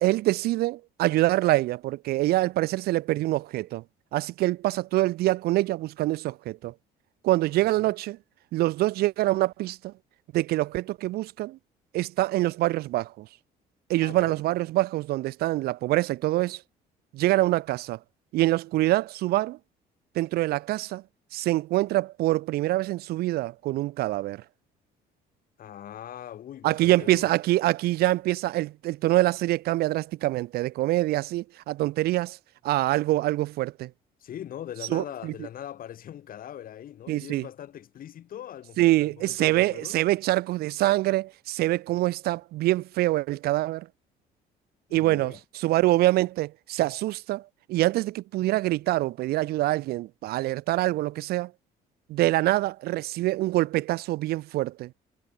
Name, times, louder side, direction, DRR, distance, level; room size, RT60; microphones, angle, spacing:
voice 1, 0.0-3.8 4.1-6.7 7.2-8.2 8.5-9.9 10.3-11.6 11.9-13.3 13.9-16.6 17.1-18.0 18.3-19.6 20.2-21.0 21.3-24.4 26.6-32.4 32.6-33.9 34.9-35.3 37.1-37.5 38.8-43.9 44.9-47.4 47.7-51.5 52.1-54.9, right 17 dB, 65° right, 0.4 m, -25 dB
voice 2, 14.0-14.4 25.6-27.3 34.2-40.0 44.9-45.4, left 10 dB, 55° left, 4.4 m, -41 dB
cardioid pair, 110°, 17 cm